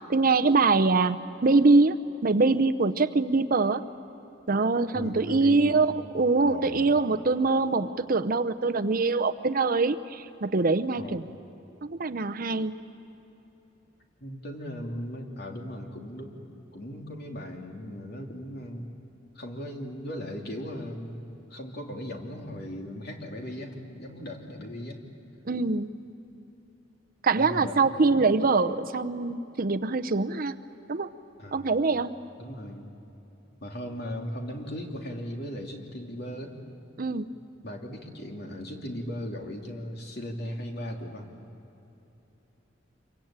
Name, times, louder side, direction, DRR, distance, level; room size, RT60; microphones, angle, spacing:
voice 1, 0.1-2.0 2.2-3.8 4.5-11.2 11.8-12.7 25.5-25.9 27.2-30.6 30.9-31.1 31.5-32.1 37.0-37.3, right 3 dB, 50° right, 11 dB, 0.7 m, -24 dB
voice 2, 4.9-5.8 6.5-6.9 10.9-11.2 14.2-16.4 16.7-18.9 19.3-21.2 21.5-25.0 27.4-28.2 31.4-31.8 32.4-32.9 33.6-36.6 37.6-41.3, equal, 55° left, 1 dB, 2.9 m, -37 dB
26.5 x 23.5 x 8.8 m, 3.0 s
head